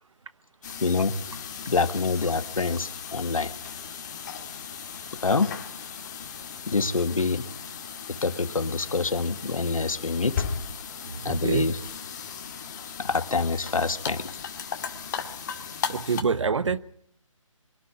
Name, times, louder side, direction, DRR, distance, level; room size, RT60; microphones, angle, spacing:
sound 1, 0.6-16.2, left 7 dB, 35° left, 2.0 m, -37 dB
voice 1, 0.8-1.1 1.7-3.5 5.2-5.5 6.7-7.4 8.2-10.4 11.2-11.8 13.0-14.3, left 4 dB, 80° left, 1.7 m, -26 dB
voice 2, 11.0-11.8 15.9-16.8, right 5 dB, 65° right, 1.1 m, -27 dB
23.5 x 12.5 x 9.9 m
figure-of-eight pair, 160°, 17 cm